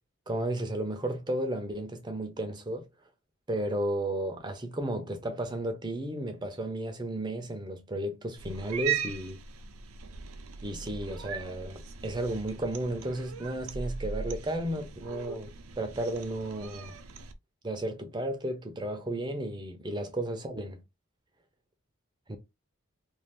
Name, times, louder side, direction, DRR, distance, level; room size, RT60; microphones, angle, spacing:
voice 1, 0.3-2.8 3.5-9.4 10.6-17.0 17.6-20.8 22.3-22.4, right 1 dB, 20° right, 0.6 m, -33 dB
Cat, 8.4-17.3, right 7 dB, 85° right, 0.5 m, -39 dB
2.5 x 2.4 x 3.3 m
head